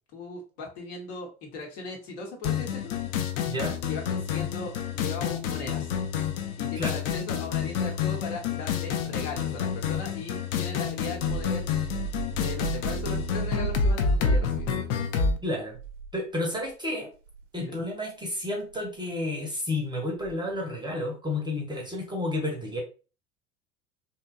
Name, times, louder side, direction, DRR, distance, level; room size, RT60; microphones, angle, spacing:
voice 1, 0.1-3.0 3.9-6.0 6.6-11.6 12.4-14.7 17.6-17.8, left 2 dB, 65° left, 1 dB, 1.0 m, -38 dB
sound 1, 2.4-15.4, left 6 dB, 40° left, 0.4 m, -28 dB
sound 2, 10.8-16.7 17.2-17.5 18.7-19.0 20.1-20.5, right 10 dB, 60° right, 0.6 m, -38 dB
voice 2, 15.4-15.8 16.1-17.1 17.5-22.8, left 1 dB, 10° right, 0 dB, 0.6 m, -31 dB
2.7 x 2.2 x 2.3 m, 0.35 s
figure-of-eight pair, 75°, 41 cm